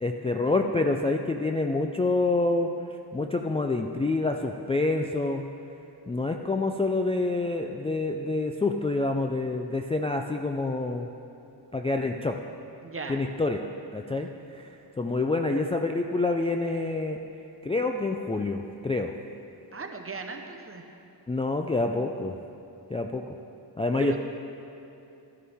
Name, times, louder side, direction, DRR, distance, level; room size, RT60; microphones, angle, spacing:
voice 1, 0.0-2.7 3.1-5.5 6.1-11.1 11.7-12.4 13.1-13.7 13.9-14.7 15.0-17.2 17.6-19.1 21.3-22.4 22.9-23.3 23.8-24.2, left 2 dB, 15° left, 2 dB, 0.4 m, -27 dB
voice 2, 12.8-13.2 19.7-20.9 24.0-24.2, right 4 dB, 30° right, 4 dB, 0.9 m, -37 dB
13.0 x 11.0 x 3.5 m, 3.0 s
wide cardioid pair, 110°, 41 cm